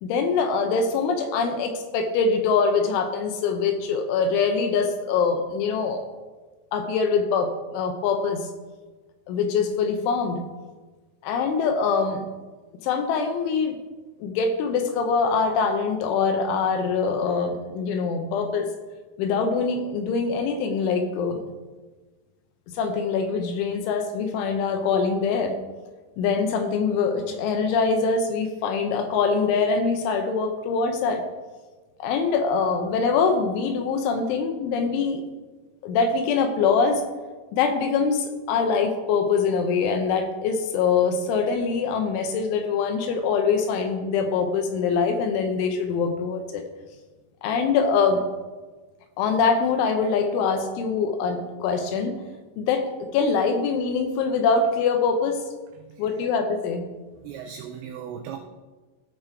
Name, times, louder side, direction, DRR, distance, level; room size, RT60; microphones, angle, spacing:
voice 1, 0.0-6.0 6.7-8.5 9.3-10.4 11.2-12.3 12.8-13.8 14.2-18.7 19.2-21.4 22.7-25.5 26.2-31.2 32.0-35.2 35.8-37.0 37.5-46.6 47.4-48.2 49.2-52.2 52.6-52.8 53.1-55.4 56.0-56.8, left 5 dB, 80° left, 5 dB, 3.0 m, -23 dB
voice 2, 57.2-58.4, right 8 dB, 90° right, 5 dB, 2.5 m, -38 dB
15.5 x 5.3 x 4.5 m, 1.3 s
omnidirectional pair, 6.0 m